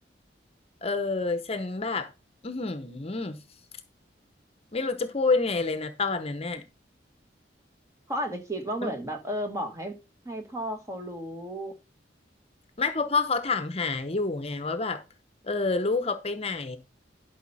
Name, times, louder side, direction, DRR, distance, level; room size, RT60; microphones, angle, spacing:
voice 1, 0.8-2.1 2.4-3.4 4.7-6.6 8.8-8.9 12.8-15.0 15.4-16.8, left 3 dB, 35° left, 0.9 m, -28 dB
voice 2, 8.1-9.9 10.2-11.7, equal, 15° right, 1.5 m, -33 dB
11.5 x 5.6 x 4.1 m
head